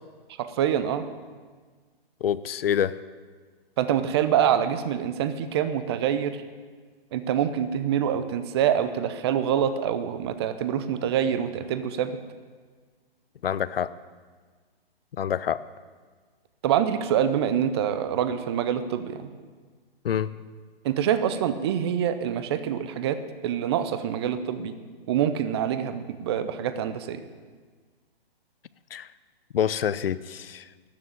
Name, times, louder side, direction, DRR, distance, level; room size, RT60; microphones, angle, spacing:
voice 1, 0.4-1.1 3.8-6.4 7.1-12.2 16.6-19.3 20.8-24.8 25.1-27.2, right 9 dB, 25° right, 11 dB, 0.6 m, -25 dB
voice 2, 2.2-3.0 13.4-13.9 15.2-15.6 20.0-20.3 28.9-29.1 29.5-30.6, left 9 dB, 70° left, 16 dB, 0.6 m, -26 dB
13.0 x 7.0 x 9.0 m, 1.5 s
hypercardioid pair, 150°, 30 cm